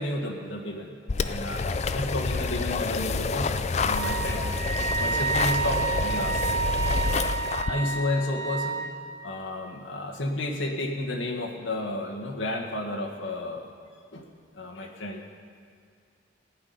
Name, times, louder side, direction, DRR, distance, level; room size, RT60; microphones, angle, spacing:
voice 1, 0.0-4.4 5.0-6.4 7.6-8.8 9.2-13.6 14.1-14.2 14.5-15.2, left 1 dB, 75° left, 0 dB, 1.6 m, -32 dB
sound 1, 1.1-7.7, left 4 dB, 35° left, 0.4 m, -28 dB
Wind instrument woodwind instrument, 3.9-8.9, right 5 dB, 80° right, 1.6 m, -29 dB
16.0 x 5.9 x 9.5 m, 2.1 s
head